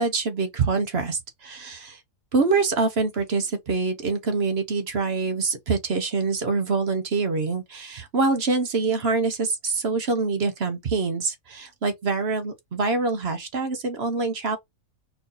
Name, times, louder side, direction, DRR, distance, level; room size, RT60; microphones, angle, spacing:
voice 1, 0.0-2.0 2.3-14.6, right 4 dB, 50° right, 1.1 m, -25 dB
4.6 x 2.7 x 3.9 m
omnidirectional pair, 1.5 m